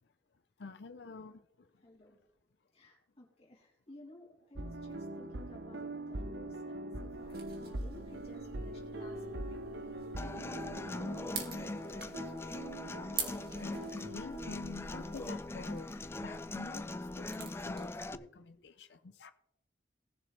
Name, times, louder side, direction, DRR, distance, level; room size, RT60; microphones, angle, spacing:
voice 1, 0.6-1.7 6.7-6.8 13.6-15.9 16.2-18.1 18.6-19.3, left 4 dB, 75° left, 10 dB, 0.6 m, -47 dB
voice 2, 1.8-2.2 2.7-9.6 10.2-12.2 18.1-18.2, left 1 dB, 35° left, -1 dB, 3.1 m, -54 dB
sound 1, 4.5-16.0 16.2-16.3, right 1 dB, 90° right, 0.9 m, -43 dB
sound 2, 7.1-18.1, right 5 dB, 60° right, 2.4 m, -47 dB
Human voice / Acoustic guitar, 10.2-18.1, left 2 dB, 15° left, 0.3 m, -41 dB
18.5 x 7.0 x 3.3 m, 0.83 s
head